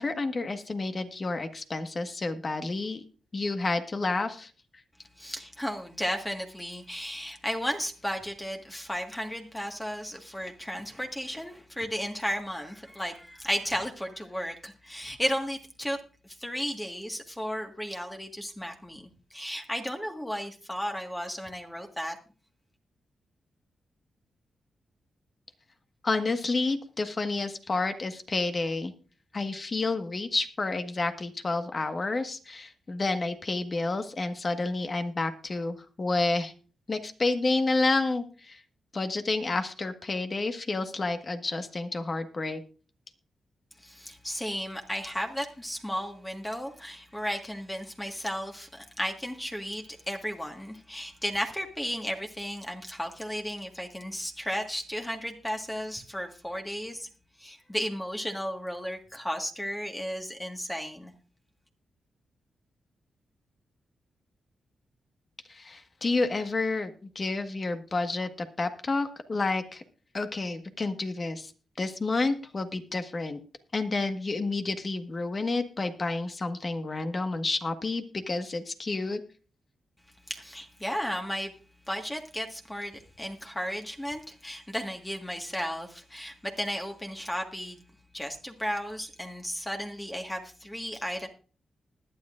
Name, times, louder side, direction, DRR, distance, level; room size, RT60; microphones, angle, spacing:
voice 1, 0.0-3.0 3.3-4.5 26.0-28.9 29.3-36.5 36.9-38.6 38.9-42.6 65.5-68.3 68.6-69.8 70.1-71.5 71.8-73.4 73.7-79.2, left 3 dB, 40° left, 8 dB, 1.5 m, -30 dB
voice 2, 5.2-16.0 16.2-22.2 43.8-57.1 57.4-61.1 80.3-81.5 81.9-87.8 88.1-91.3, equal, 10° left, 3 dB, 1.6 m, -34 dB
20.5 x 9.9 x 2.5 m, 0.37 s
cardioid pair, 65°, 0 cm